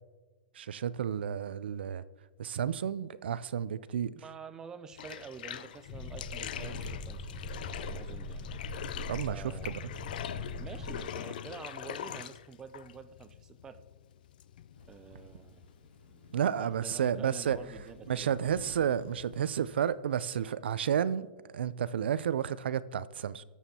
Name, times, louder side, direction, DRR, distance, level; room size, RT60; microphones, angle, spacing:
voice 1, 0.6-2.0 2.4-4.1 9.1-9.7 16.3-17.6 18.1-21.3 21.5-23.4, right 9 dB, 90° right, 0.4 m, -31 dB
voice 2, 4.1-7.4 7.8-8.5 9.3-9.7 10.4-13.8 14.9-15.6 16.4-18.3, right 6 dB, 10° right, 0.4 m, -48 dB
Bathtub (filling or washing), 4.9-16.6, left 10 dB, 55° left, 0.4 m, -43 dB
sound 1, 5.9-11.0, left 2 dB, 25° left, 1.0 m, -41 dB
Thunder / Rain, 14.7-19.9, left 2 dB, 80° left, 2.4 m, -54 dB
20.5 x 7.2 x 2.8 m
hypercardioid pair, 170°, 6 cm